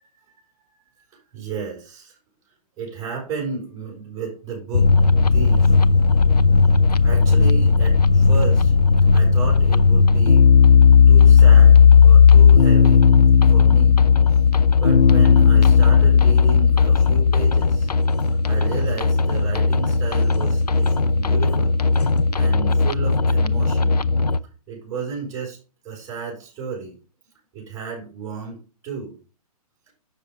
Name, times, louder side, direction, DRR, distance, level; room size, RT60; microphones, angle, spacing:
voice 1, 1.0-2.2 2.8-4.9 5.3-5.8 7.0-8.7 9.1-10.4 11.1-13.1 13.5-14.0 14.3-14.4 14.8-17.9 18.2-21.8 22.3-24.0 24.7-25.6 25.8-27.0 27.5-29.2 29.9-30.0, right 5 dB, 15° right, -2 dB, 4.0 m, -33 dB
sound 1, 4.7-24.4, left 5 dB, 85° left, 0.6 m, -15 dB
6.8 x 6.7 x 4.8 m, 0.35 s
figure-of-eight pair, 125°, 20 cm